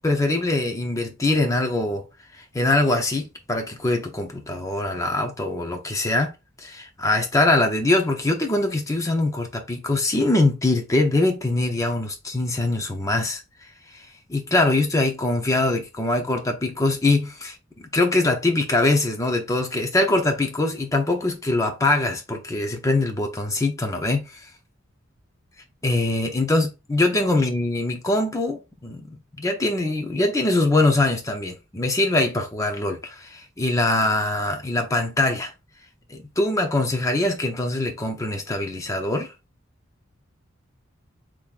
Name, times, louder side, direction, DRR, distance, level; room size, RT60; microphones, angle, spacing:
voice 1, 0.0-2.0 2.5-6.3 6.6-13.4 14.3-24.2 25.8-35.5 36.1-39.3, left 2 dB, 15° left, 0.7 m, -23 dB
3.7 x 3.1 x 2.5 m
head